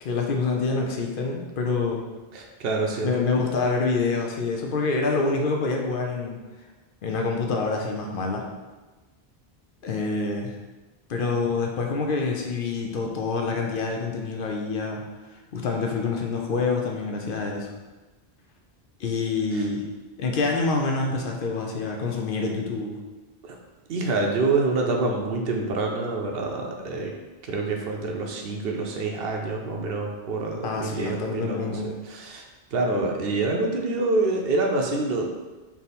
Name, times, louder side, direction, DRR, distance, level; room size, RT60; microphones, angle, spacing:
voice 1, 0.0-2.0 3.0-6.4 7.0-8.4 9.8-10.6 11.1-15.0 15.5-17.7 19.0-19.9 20.2-23.0 30.6-31.9, left 4 dB, 60° left, 1 dB, 0.7 m, -26 dB
voice 2, 2.3-3.2 19.5-19.7 23.4-23.6 23.9-27.1 27.4-32.4 32.7-35.2, right 3 dB, 70° right, 1 dB, 0.8 m, -26 dB
3.5 x 2.8 x 4.1 m, 1.2 s
omnidirectional pair, 1.1 m